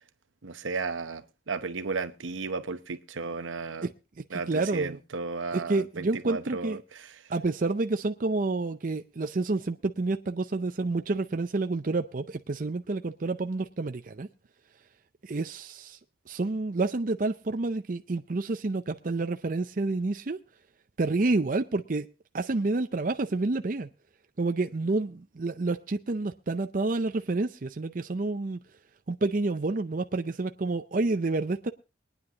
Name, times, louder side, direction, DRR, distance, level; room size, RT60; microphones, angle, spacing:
voice 1, 0.4-3.9 4.3-7.1, right 4 dB, 90° right, 0.9 m, -34 dB
voice 2, 4.2-5.0 5.5-6.8 7.3-14.3 15.2-16.0 16.3-20.4 21.0-22.1 22.3-23.9 24.4-28.6 29.1-31.7, right 3 dB, 45° right, 0.5 m, -29 dB
23.5 x 9.7 x 2.8 m
head